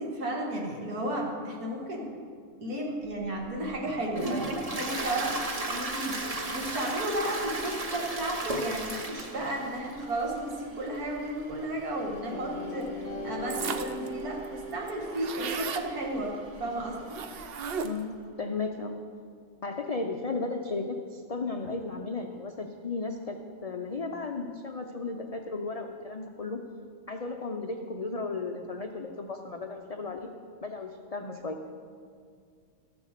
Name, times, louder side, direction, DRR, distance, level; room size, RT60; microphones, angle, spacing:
voice 1, 0.0-2.1 2.6-5.3 5.7-6.2 6.5-12.9 13.2-16.3 16.6-17.0, right 1 dB, 85° right, -1 dB, 2.3 m, -33 dB
Toilet flush, 3.1-17.9, right 2 dB, 30° right, 0.8 m, -38 dB
sound 1, 12.3-16.9, equal, 35° left, 0.8 m, -40 dB
sound 2, 13.5-14.1 14.4-14.5 14.7-15.9 17.1-18.1, right 6 dB, 55° right, 0.7 m, -35 dB
voice 2, 17.8-18.9 19.6-23.4 23.6-26.6 27.1-30.3 30.6-31.8, left 3 dB, 70° left, 3 dB, 0.3 m, -35 dB
13.5 x 7.0 x 6.6 m, 2.1 s
omnidirectional pair, 1.5 m